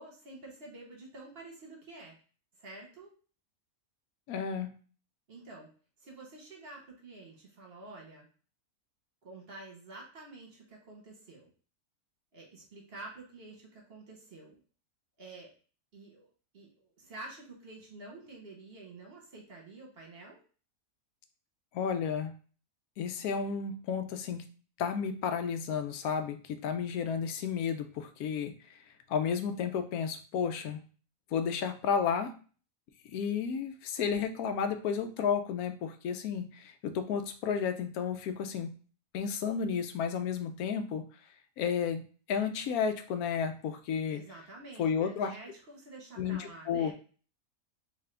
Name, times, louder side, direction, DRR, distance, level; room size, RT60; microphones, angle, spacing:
voice 1, 0.0-2.2 2.6-3.1 5.3-5.7 6.0-8.3 9.2-11.5 12.3-14.5 15.2-15.5 15.9-16.3 16.5-20.4 44.1-46.9, right 2 dB, 45° right, -1 dB, 1.1 m, -49 dB
voice 2, 4.3-4.7 21.7-22.3 23.0-24.4 24.8-28.5 29.1-30.8 31.3-32.3 33.0-38.7 39.1-41.0 41.6-42.0 42.3-44.2 44.8-45.3 46.2-46.9, left 7 dB, 85° left, 8 dB, 1.1 m, -32 dB
3.6 x 2.8 x 3.3 m, 0.39 s
omnidirectional pair, 1.5 m